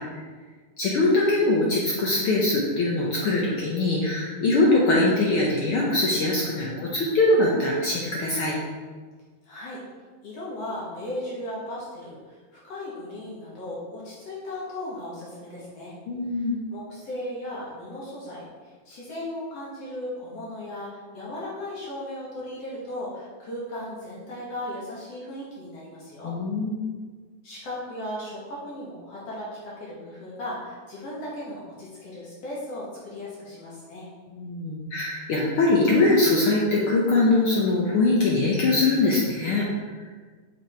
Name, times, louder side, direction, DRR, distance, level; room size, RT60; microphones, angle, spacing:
voice 1, 0.8-8.6 16.1-16.6 26.2-26.9 34.3-39.7, left 2 dB, 90° left, -4 dB, 1.1 m, -22 dB
voice 2, 9.4-9.8 10.2-16.0 16.3-16.5 16.7-26.3 27.4-34.1, left 1 dB, 55° left, -6 dB, 2.3 m, -36 dB
6.0 x 5.8 x 4.4 m, 1.5 s
omnidirectional pair, 3.7 m